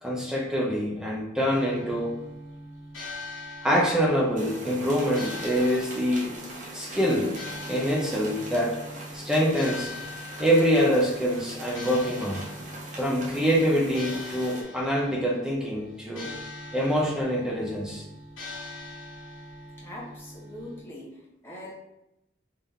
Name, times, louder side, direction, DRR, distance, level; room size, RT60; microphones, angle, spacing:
voice 1, 0.0-2.1 3.6-6.3 6.7-7.3 7.7-8.8 9.1-9.9 10.4-12.5 13.0-16.3 16.7-18.0, equal, 5° right, -2 dB, 0.6 m, -25 dB
sound 1, 1.5-20.8, left 1 dB, 80° left, 1.3 m, -42 dB
sound 2, 4.4-14.6, right 1 dB, 40° right, 0.8 m, -42 dB
voice 2, 19.8-21.7, left 1 dB, 10° left, -7 dB, 1.1 m, -42 dB
3.5 x 2.8 x 3.7 m, 0.88 s
head